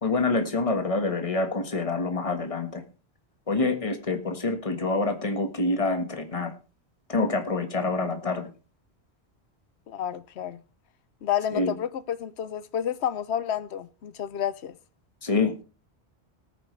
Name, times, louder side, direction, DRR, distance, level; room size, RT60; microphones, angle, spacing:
voice 1, 0.0-2.8 3.5-6.5 7.1-8.5 11.5-11.7 15.2-15.6, left 3 dB, 30° left, 1.5 m, -26 dB
voice 2, 9.9-10.6 11.2-14.7, left 9 dB, 75° left, 1.0 m, -30 dB
18.5 x 9.1 x 3.2 m
omnidirectional pair, 1.1 m